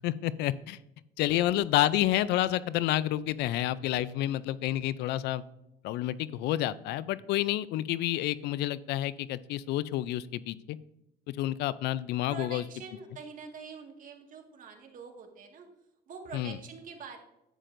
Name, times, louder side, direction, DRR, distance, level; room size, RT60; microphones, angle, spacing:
voice 1, 0.0-0.8 1.2-5.4 5.8-10.8 11.3-12.6 16.3-16.5, left 14 dB, 85° left, 18 dB, 0.4 m, -29 dB
voice 2, 4.3-4.9 12.3-15.7 16.1-17.2, right 5 dB, 50° right, 2 dB, 1.8 m, -46 dB
11.0 x 9.1 x 2.6 m, 0.87 s
cardioid pair, 110°, 17 cm